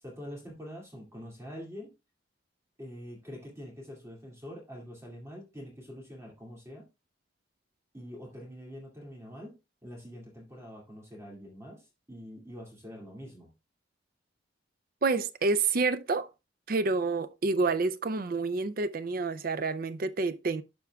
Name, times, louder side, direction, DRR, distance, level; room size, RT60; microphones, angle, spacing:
voice 1, 0.0-1.9 2.8-6.9 7.9-9.6 9.8-13.5, equal, 15° right, 2.3 m, -45 dB
voice 2, 15.0-16.3 16.7-20.6, right 3 dB, 45° right, 0.5 m, -28 dB
12.0 x 4.5 x 2.3 m
head